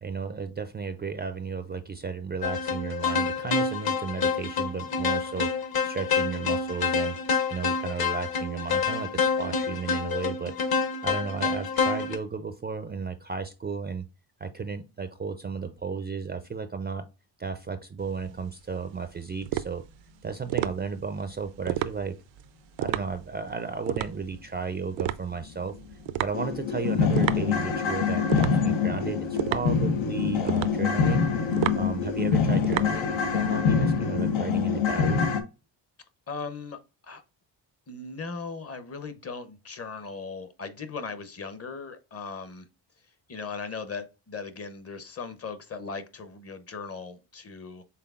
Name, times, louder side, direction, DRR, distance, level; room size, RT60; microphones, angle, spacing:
voice 1, 0.0-5.5 5.8-7.2 7.5-10.6 11.0-14.1 14.4-17.1 17.4-19.8 20.2-22.2 22.8-31.2 31.8-35.2, right 5 dB, 25° right, 0.4 m, -34 dB
sound 1, 2.4-12.2, left 5 dB, 55° left, 1.0 m, -27 dB
sound 2, 18.0-33.6, right 13 dB, 80° right, 0.5 m, -33 dB
sound 3, 25.4-25.5 25.9-26.0 26.3-35.4, left 6 dB, 90° left, 0.8 m, -25 dB
voice 2, 36.3-37.2 37.9-42.7 43.3-47.8, left 4 dB, 35° left, 0.7 m, -38 dB
5.7 x 3.7 x 2.3 m
cardioid pair, 105°, 45 cm